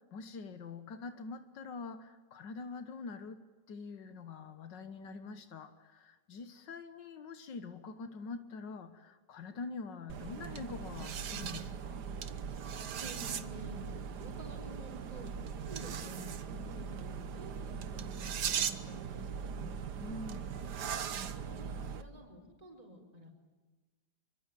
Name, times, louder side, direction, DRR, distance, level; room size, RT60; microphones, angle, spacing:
voice 1, 0.0-12.0 20.0-20.6, left 4 dB, 90° left, 9 dB, 2.0 m, -45 dB
sound 1, 10.1-22.0, right 7 dB, 70° right, 1.7 m, -39 dB
voice 2, 13.0-13.8 14.2-15.3 15.7-19.8 21.4-23.3, right 1 dB, 20° right, 3 dB, 4.8 m, -50 dB
25.0 x 24.5 x 9.3 m, 1.3 s
omnidirectional pair, 1.9 m